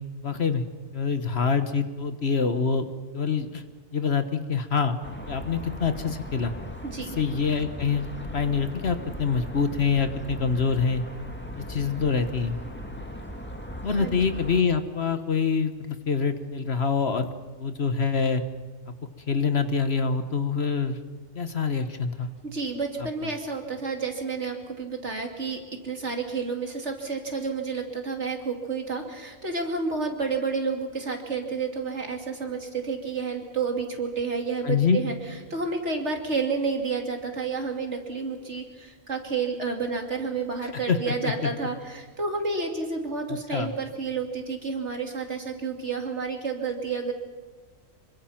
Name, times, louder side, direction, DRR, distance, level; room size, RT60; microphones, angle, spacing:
voice 1, 0.2-0.6 0.9-2.9 3.1-3.6 3.9-5.0 5.3-6.5 7.2-8.1 8.3-11.0 11.6-12.6 13.8-17.3 17.6-18.4 19.3-21.0 21.3-22.3 34.6-35.0 40.9-41.5 43.3-43.7, left 5 dB, 55° left, 9 dB, 1.5 m, -25 dB
sound 1, 5.0-14.6, equal, 10° left, 2.0 m, -38 dB
voice 2, 6.8-7.2 14.0-14.2 22.4-35.1 35.5-47.1, right 4 dB, 60° right, 3 dB, 3.1 m, -30 dB
26.0 x 24.0 x 5.9 m, 1.4 s
omnidirectional pair, 1.4 m